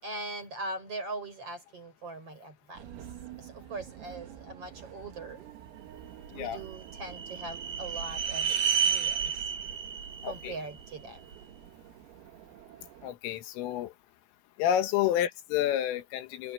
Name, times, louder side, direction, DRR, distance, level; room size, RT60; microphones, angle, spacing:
voice 1, 0.0-2.9 3.4-5.5 6.3-9.4 10.2-11.2, right 2 dB, 30° right, 7.0 m, -41 dB
sound 1, 2.7-13.2, right 11 dB, 85° right, 4.7 m, -49 dB
sound 2, 6.2-11.4, right 7 dB, 65° right, 1.9 m, -32 dB
voice 2, 10.2-10.6 13.0-13.9 14.6-16.5, left 11 dB, 80° left, 3.8 m, -29 dB
omnidirectional pair, 5.8 m